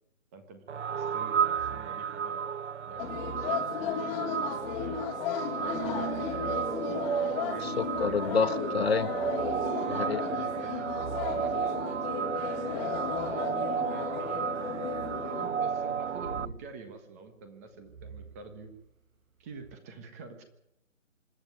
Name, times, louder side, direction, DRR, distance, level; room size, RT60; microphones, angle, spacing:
voice 1, 0.3-5.2 5.6-7.7 8.1-8.9 10.3-12.3 13.1-18.7 19.4-20.4, right 4 dB, 10° right, 7 dB, 1.3 m, -48 dB
sound 1, 0.7-16.4, right 7 dB, 60° right, 0.7 m, -33 dB
sound 2, 1.5-2.0 2.9-3.6 4.5-5.2 5.8-6.9 7.8-8.4 8.9-9.8 10.7-13.5 14.8-15.3 16.2-16.6 17.8-19.0 19.5-19.8, right 5 dB, 80° right, 1.9 m, -47 dB
sound 3, 3.0-15.5, left 7 dB, 10° left, 2.0 m, -35 dB
voice 2, 7.6-9.1 9.9-10.2, left 5 dB, 50° left, 11 dB, 1.4 m, -28 dB
26.0 x 12.0 x 9.4 m, 0.84 s
hypercardioid pair, 165°, 40 cm